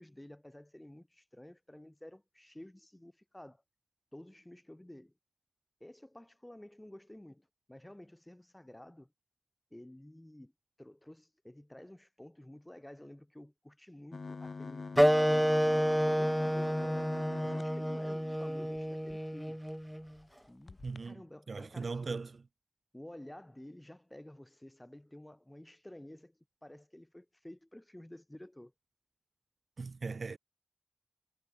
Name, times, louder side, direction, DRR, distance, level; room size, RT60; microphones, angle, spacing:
voice 1, 0.0-3.6 4.1-5.1 5.8-9.1 9.7-10.5 10.8-17.1 17.4-19.6 20.5-22.1 22.9-28.7, left 1 dB, 15° left, 3.8 m, -52 dB
sound 1, 14.1-19.1 19.7-19.8 20.1-20.3 20.7-21.0, left 4 dB, 75° left, 0.8 m, -44 dB
Wind instrument woodwind instrument, 15.0-20.1, equal, 5° right, 0.3 m, -29 dB
voice 2, 20.8-21.2 21.5-22.5 29.8-30.4, right 4 dB, 75° right, 1.2 m, -39 dB
wide cardioid pair, 80°, 0 cm